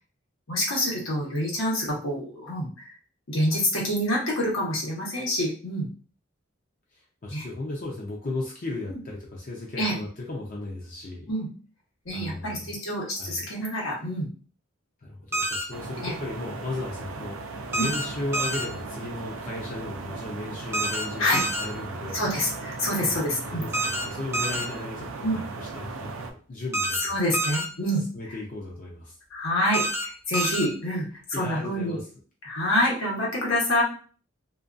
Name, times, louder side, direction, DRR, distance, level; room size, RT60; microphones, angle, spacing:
voice 1, 0.5-2.9 3.3-5.9 7.3-7.4 8.9-9.0 9.8-9.9 11.3-11.5 12.0-14.3 16.0-16.1 17.8-17.9 21.2-21.4 22.1-23.6 25.2-25.4 27.0-28.0 29.3-32.0 32.4-33.8, left 1 dB, 85° left, -2 dB, 1.0 m, -27 dB
voice 2, 6.9-11.3 12.1-12.8 13.1-13.4 15.0-22.2 23.0-27.1 28.0-29.2 31.3-32.0, left 2 dB, 40° left, -2 dB, 0.5 m, -36 dB
sound 1, 15.3-15.6 17.7-18.0 18.3-18.6 20.7-21.0 21.3-21.6 23.7-24.0 24.3-24.6 26.7-27.0 27.3-27.6 29.7-30.0 30.3-30.6, right 1 dB, 15° right, 0.5 m, -27 dB
sound 2, 15.7-26.3, right 3 dB, 90° right, 0.4 m, -37 dB
2.5 x 2.3 x 2.5 m, 0.40 s
head